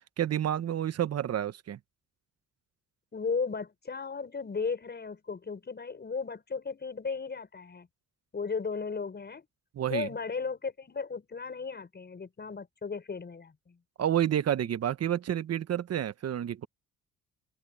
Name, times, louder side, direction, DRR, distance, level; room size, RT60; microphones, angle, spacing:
voice 1, 0.2-1.8 9.7-10.1 14.0-16.7, right 10 dB, 55° right, 1.2 m, -29 dB
voice 2, 3.1-7.9 8.3-9.4 9.9-13.8, left 5 dB, 35° left, 5.9 m, -35 dB
open air
cardioid pair, 90°, 30 cm